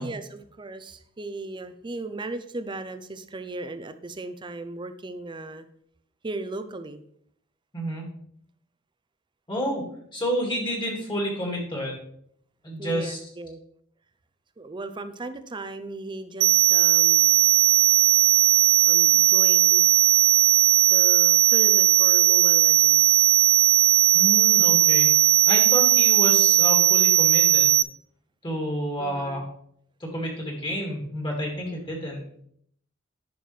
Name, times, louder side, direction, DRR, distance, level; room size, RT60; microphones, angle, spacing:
voice 1, 0.0-5.7 6.2-7.0 12.8-13.6 14.6-17.4 18.9-19.8 20.9-23.3 29.0-29.4, right 2 dB, 25° right, 10 dB, 0.5 m, -37 dB
voice 2, 7.7-8.1 9.5-9.8 10.1-11.9 12.6-13.2 24.1-27.8 28.4-29.4 30.0-32.5, equal, 25° left, 0 dB, 2.1 m, -30 dB
sound 1, 16.4-27.8, right 14 dB, 90° right, 0.3 m, -18 dB
10.0 x 6.1 x 3.2 m, 0.67 s
head